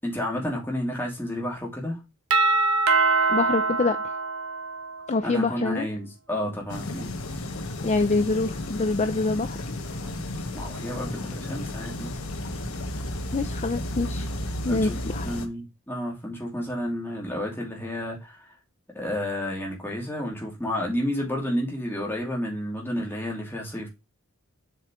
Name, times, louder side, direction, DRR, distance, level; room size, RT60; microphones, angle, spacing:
voice 1, 0.0-2.0 5.2-7.1 10.5-12.2 14.7-18.5 18.9-23.9, left 1 dB, 10° left, 2.6 m, -31 dB
Doorbell, 2.3-5.1, right 3 dB, 75° right, 1.1 m, -23 dB
voice 2, 3.3-4.0 5.1-5.9 7.8-9.6 13.3-14.3 14.6-15.4, left 3 dB, 30° left, 0.5 m, -25 dB
sound 1, 6.7-15.5, left 1 dB, 85° left, 1.2 m, -33 dB
7.5 x 4.8 x 3.1 m
head